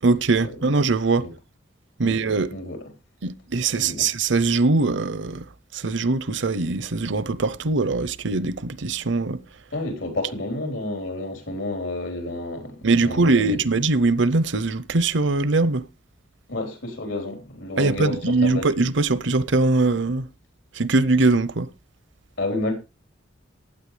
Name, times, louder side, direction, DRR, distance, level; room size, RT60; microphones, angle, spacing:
voice 1, 0.0-1.3 2.0-2.5 3.2-5.5 5.7-9.4 12.8-15.8 17.8-20.3 20.7-21.7, right 3 dB, 70° right, 0.7 m, -21 dB
voice 2, 3.8-4.1 9.7-13.4 16.5-18.7 22.4-22.7, left 2 dB, 90° left, 4.0 m, -30 dB
15.5 x 9.6 x 3.3 m
head